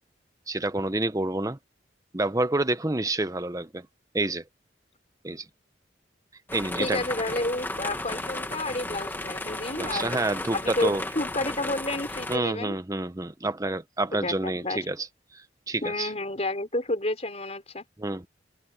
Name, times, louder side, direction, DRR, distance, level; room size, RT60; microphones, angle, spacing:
voice 1, 0.5-1.6 2.1-3.8 4.1-4.4 5.2-5.4 6.5-7.0 9.7-11.0 12.3-15.1 15.7-16.1 18.0-18.3, right 2 dB, 20° right, 0.9 m, -28 dB
sound 1, 6.5-12.4, left 2 dB, 10° left, 1.6 m, -34 dB
voice 2, 6.8-10.2 10.5-12.8 14.1-14.9 15.8-17.8, left 2 dB, 35° left, 5.1 m, -30 dB
head